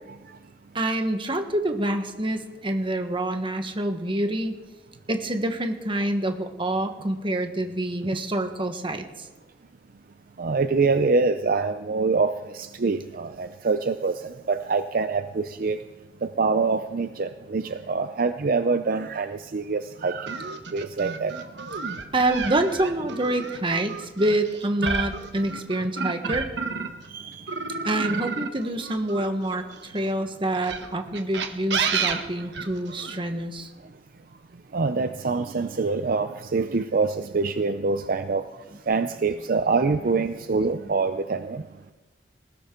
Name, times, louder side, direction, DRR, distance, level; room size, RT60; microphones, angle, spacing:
voice 1, 0.7-4.5 5.1-9.0 22.1-26.5 27.8-33.7 40.2-40.3, right 1 dB, 30° right, 6 dB, 1.3 m, -26 dB
voice 2, 10.4-15.8 16.2-20.4 20.7-21.3 27.1-27.5 34.7-38.4 38.9-41.6, right 4 dB, 55° right, 10 dB, 0.5 m, -25 dB
sound 1, 20.3-27.1 27.5-29.8 30.5-33.2, right 5 dB, 85° right, 1.3 m, -31 dB
20.0 x 16.5 x 3.8 m, 1.2 s
head